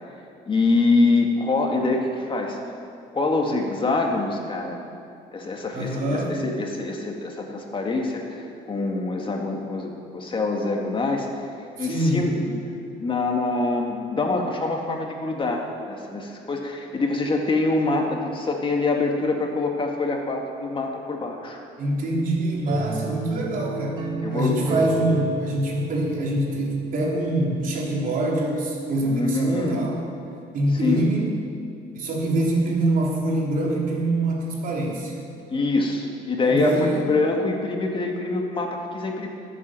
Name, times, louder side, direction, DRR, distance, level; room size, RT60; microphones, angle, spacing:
voice 1, 0.5-2.6 3.1-4.8 5.3-8.4 8.7-11.3 11.8-12.6 13.0-21.6 24.2-24.7 29.1-29.8 30.8-31.0 35.5-39.3, left 3 dB, 30° left, 1 dB, 2.0 m, -25 dB
voice 2, 5.7-6.3 11.8-12.3 21.8-30.0 30.5-31.3 31.9-35.1 36.4-37.0, right 1 dB, 55° right, -2 dB, 3.9 m, -24 dB
sound 1, 22.7-27.6, right 4 dB, 25° right, 2.3 m, -32 dB
20.0 x 8.6 x 7.6 m, 2.5 s
cardioid pair, 110°, 17 cm